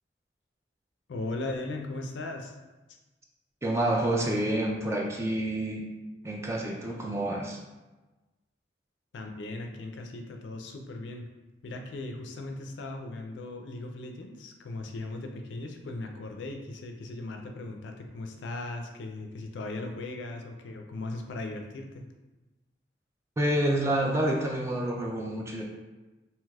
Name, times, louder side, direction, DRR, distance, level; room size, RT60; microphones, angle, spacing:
voice 1, 1.1-2.5 9.1-11.3 11.6-22.1, left 2 dB, 75° left, 3 dB, 0.4 m, -38 dB
voice 2, 3.6-5.9 6.2-7.6 23.4-25.6, right 1 dB, 15° right, 0 dB, 0.3 m, -28 dB
3.2 x 2.8 x 2.2 m, 1.1 s
head